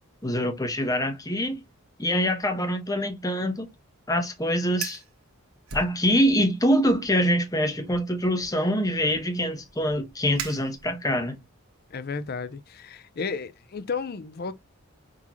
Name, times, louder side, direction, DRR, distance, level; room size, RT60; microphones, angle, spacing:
voice 1, 0.2-1.6 2.0-3.7 4.1-5.0 5.7-11.4, equal, 15° left, 0.9 m, -24 dB
Fire, 4.7-5.1 5.7-6.5 6.8-7.2 7.8-11.2, right 6 dB, 80° right, 1.4 m, -40 dB
voice 2, 11.9-14.5, left 5 dB, 45° left, 0.5 m, -33 dB
6.1 x 2.8 x 2.9 m
head